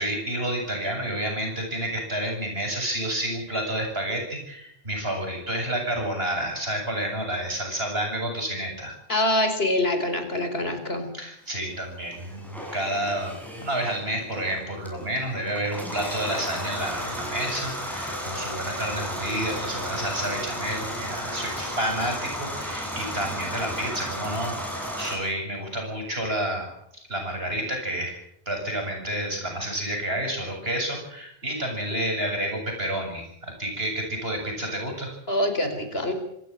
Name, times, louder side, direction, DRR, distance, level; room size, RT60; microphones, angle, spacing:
voice 1, 0.0-9.0 11.1-28.2 28.5-35.2, right 1 dB, 75° right, 3 dB, 7.9 m, -30 dB
voice 2, 9.1-11.1 35.3-36.1, left 1 dB, 75° left, 7 dB, 4.7 m, -25 dB
sound 1, 12.1-25.2, equal, ahead, 7.8 m, -34 dB
26.5 x 15.5 x 8.9 m, 0.78 s
omnidirectional pair, 1.0 m